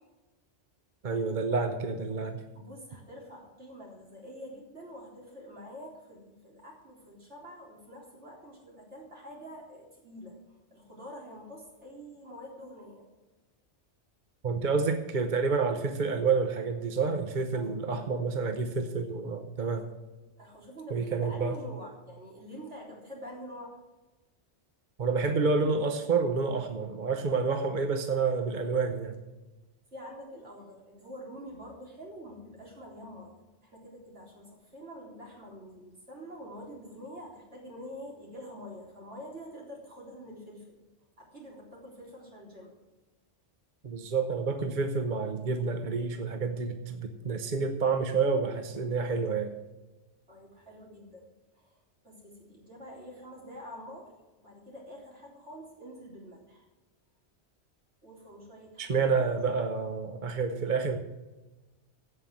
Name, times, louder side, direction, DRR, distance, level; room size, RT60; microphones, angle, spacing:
voice 1, 1.0-2.4 14.4-19.9 20.9-21.6 25.0-29.2 43.8-49.5 58.8-61.0, right 4 dB, 45° right, 6 dB, 1.0 m, -29 dB
voice 2, 2.5-13.0 17.5-18.0 20.4-23.8 29.9-40.8 41.2-42.7 50.3-51.2 51.5-54.1 54.4-56.6 58.0-59.1, equal, 85° right, -3 dB, 4.1 m, -46 dB
16.5 x 5.6 x 7.6 m, 1.1 s
omnidirectional pair, 1.2 m